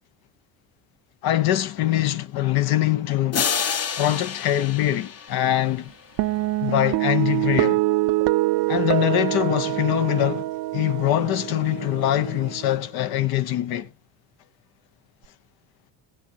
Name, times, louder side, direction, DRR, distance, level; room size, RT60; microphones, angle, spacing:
voice 1, 1.2-3.4 4.0-5.9 6.6-7.8 8.7-13.9, left 13 dB, 70° left, 1.0 m, -23 dB
sound 1, 3.3-6.0, left 7 dB, 40° left, 1.1 m, -28 dB
sound 2, 6.2-12.8, right 19 dB, 65° right, 0.6 m, -25 dB
22.0 x 7.8 x 2.8 m
cardioid pair, 105°, 38 cm